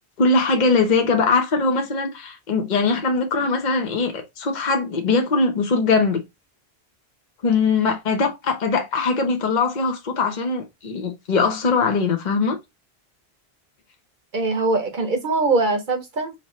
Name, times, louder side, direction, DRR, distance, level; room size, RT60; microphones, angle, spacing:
voice 1, 0.2-6.2 7.4-12.6, left 4 dB, 45° left, 1.0 m, -21 dB
voice 2, 14.3-16.3, right 3 dB, 50° right, 1.0 m, -22 dB
5.8 x 2.7 x 3.0 m
omnidirectional pair, 1.1 m